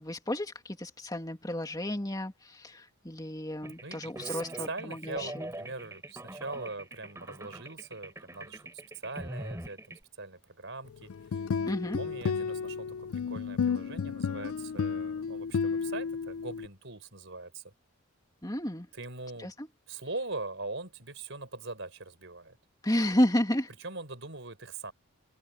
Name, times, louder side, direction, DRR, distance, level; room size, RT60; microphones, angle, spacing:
voice 1, 0.0-5.5 11.7-12.0 18.4-18.9 19.4-19.7 22.8-23.7, left 1 dB, 15° left, 2.4 m, -31 dB
sound 1, 3.6-10.0, right 1 dB, 15° right, 3.2 m, -43 dB
voice 2, 3.8-8.7 9.0-11.1 12.0-17.7 18.9-19.5 19.9-22.6 23.8-24.9, right 3 dB, 55° right, 5.0 m, -41 dB
sound 2, 11.1-16.7, left 5 dB, 75° left, 0.4 m, -32 dB
head